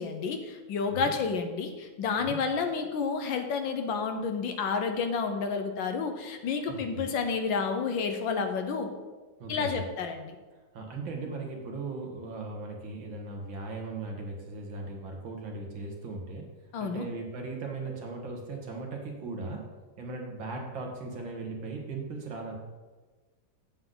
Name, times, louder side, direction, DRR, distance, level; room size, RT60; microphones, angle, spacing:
voice 1, 0.0-8.9 9.5-10.3 16.7-17.1, left 5 dB, 70° left, 6 dB, 1.5 m, -30 dB
voice 2, 6.7-7.1 9.4-9.9 10.7-16.5 16.8-19.6 20.0-22.5, right 3 dB, 65° right, 1 dB, 2.0 m, -38 dB
8.1 x 7.8 x 3.8 m, 1.3 s
omnidirectional pair, 2.3 m